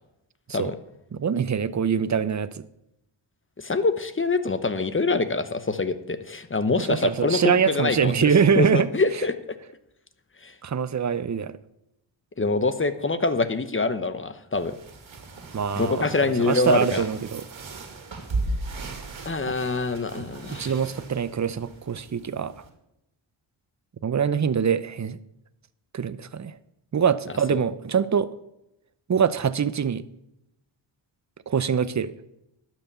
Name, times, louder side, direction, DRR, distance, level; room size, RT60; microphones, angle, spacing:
voice 1, 1.1-2.6 6.8-8.9 10.6-11.5 15.5-17.4 20.2-22.5 24.0-25.2 25.9-26.6 26.9-28.3 29.1-30.0 31.5-32.1, right 7 dB, 35° right, 16 dB, 0.7 m, -24 dB
voice 2, 3.6-7.4 7.7-9.6 10.4-10.5 12.4-14.7 15.8-17.0 19.2-20.7 27.5-27.6, left 3 dB, 25° left, 11 dB, 1.0 m, -25 dB
sound 1, 14.5-22.7, right 2 dB, 65° right, 2.2 m, -37 dB
11.5 x 6.1 x 6.9 m, 0.87 s
cardioid pair, 55°, 49 cm